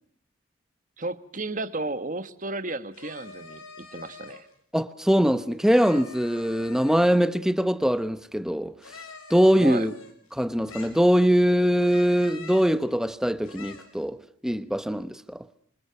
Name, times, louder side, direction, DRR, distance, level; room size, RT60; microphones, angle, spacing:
voice 1, 1.0-4.5 9.6-9.9, right 2 dB, 35° right, 1.4 m, -33 dB
sound 1, 2.9-4.5 5.7-7.3 8.8-10.3 10.7-11.4 11.8-12.8 13.4-14.0, left 4 dB, 85° left, 7.1 m, -45 dB
voice 2, 4.7-8.7 9.3-9.9 10.3-14.2 14.4-15.4, equal, 5° right, 1.0 m, -22 dB
27.5 x 26.5 x 5.8 m
head